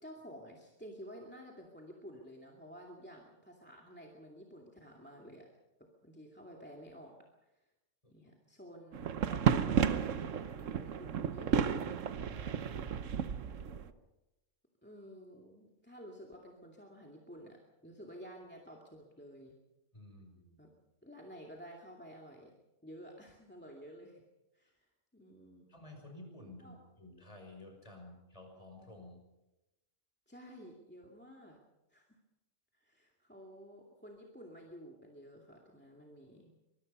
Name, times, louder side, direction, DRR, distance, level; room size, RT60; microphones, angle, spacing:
voice 1, 0.0-5.5 6.0-7.2 8.1-12.0 13.4-13.9 14.8-19.5 20.6-20.7 21.0-22.5 22.8-24.2 24.5-24.9 25.1-25.7 26.6-26.8 30.3-31.6 31.9-32.0 32.7-36.5, equal, 10° left, 0 dB, 2.4 m, -52 dB
sound 1, 8.9-13.9, right 8 dB, 85° right, 1.3 m, -32 dB
voice 2, 12.2-13.1 19.9-20.6 25.7-29.3, left 2 dB, 25° left, 2 dB, 5.9 m, -53 dB
24.5 x 21.5 x 5.5 m, 0.98 s
omnidirectional pair, 1.3 m